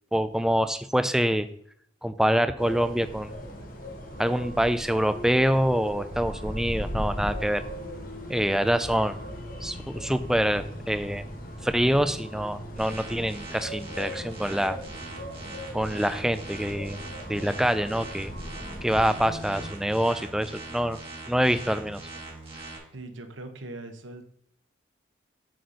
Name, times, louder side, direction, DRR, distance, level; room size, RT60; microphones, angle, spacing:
voice 1, 0.1-1.5 2.0-3.3 4.2-7.6 8.3-9.2 9.6-11.2 11.6-14.8 15.7-17.0 17.3-18.3 18.8-21.0 21.3-22.0, equal, 5° right, 11 dB, 0.4 m, -25 dB
sound 1, 2.6-19.7, equal, 45° left, 1.3 m, -38 dB
sound 2, 12.8-22.8, right 3 dB, 30° right, 2.2 m, -42 dB
voice 2, 22.9-24.2, right 2 dB, 85° right, 7 dB, 1.1 m, -40 dB
7.8 x 4.2 x 6.5 m, 0.66 s
head